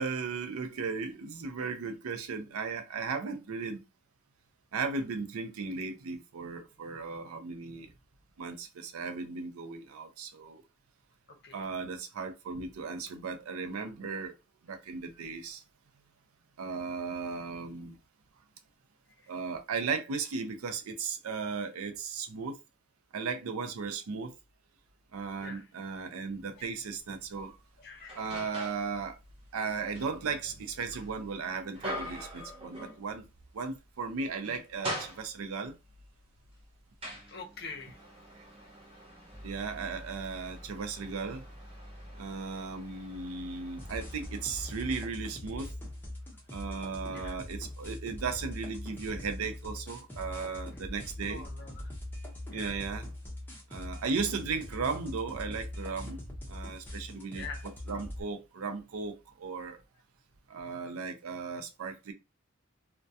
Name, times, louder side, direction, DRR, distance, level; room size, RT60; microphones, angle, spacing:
voice 1, 0.0-3.8 4.7-7.9 8.4-10.6 11.5-14.3 14.6-15.6 16.6-18.0 19.3-22.6 23.1-24.3 25.1-27.6 28.1-29.2 29.5-33.2 33.5-35.8 39.4-41.5 42.2-45.7 46.5-51.4 52.5-53.1 53.7-56.2 56.5-57.4 57.9-59.8 60.5-62.1, right 5 dB, 85° right, 0.4 m, -36 dB
sound 1, 26.8-26.9 27.3-28.9 29.3-33.4 33.7-33.9 34.3-35.7 36.4-45.0, equal, 25° right, 0.7 m, -44 dB
voice 2, 27.8-28.2 37.3-38.0 47.1-47.4 51.2-51.9 52.5-52.7 57.3-57.6, left 4 dB, 50° left, 0.6 m, -45 dB
sound 2, 43.8-58.2, left 1 dB, 10° left, 0.6 m, -42 dB
2.2 x 2.2 x 2.6 m
head